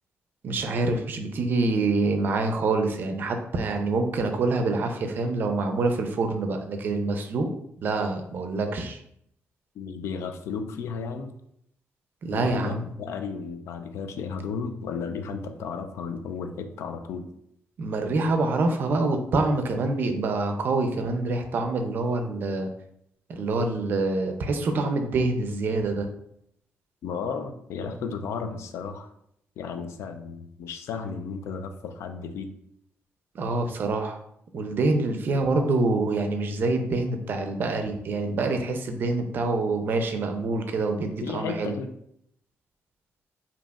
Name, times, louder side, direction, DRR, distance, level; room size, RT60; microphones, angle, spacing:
voice 1, 0.4-7.5 7.8-9.0 12.2-12.9 17.8-22.7 23.3-26.1 33.3-34.2 34.5-41.7, right 3 dB, 45° right, 6 dB, 0.4 m, -26 dB
voice 2, 9.8-11.3 12.3-17.3 27.0-29.1 29.6-32.5 41.2-41.9, left 5 dB, 75° left, 7 dB, 0.4 m, -34 dB
4.9 x 2.8 x 2.3 m, 0.73 s
wide cardioid pair, 175°, 5 cm